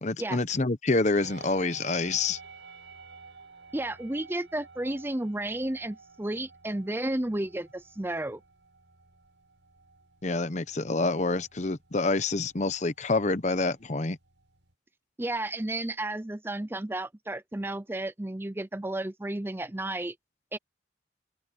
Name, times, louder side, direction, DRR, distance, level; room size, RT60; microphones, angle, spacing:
voice 1, 0.0-2.4 10.2-14.2, left 3 dB, 40° left, 0.9 m, -27 dB
sound 1, 1.1-14.7, right 4 dB, 85° right, 7.2 m, -52 dB
voice 2, 3.7-8.4 15.2-20.1 20.5-20.6, right 1 dB, 10° right, 0.6 m, -32 dB
open air
head